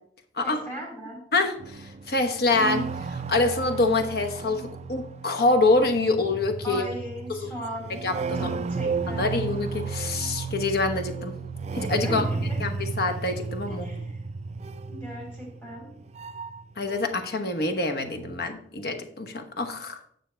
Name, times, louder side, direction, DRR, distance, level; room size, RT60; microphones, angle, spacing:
voice 1, 0.4-1.2 6.6-7.9 8.3-9.4 12.0-12.6 13.7-14.2 14.9-15.9, equal, 10° left, -3 dB, 3.8 m, -37 dB
voice 2, 1.3-6.8 8.0-8.5 9.1-11.3 11.7-12.2 12.6-13.9 16.8-19.9, left 2 dB, 55° left, 5 dB, 1.0 m, -26 dB
sound 1, 1.6-17.4 17.7-18.5, right 4 dB, 35° right, 0.3 m, -34 dB
9.3 x 6.3 x 4.4 m, 0.63 s
head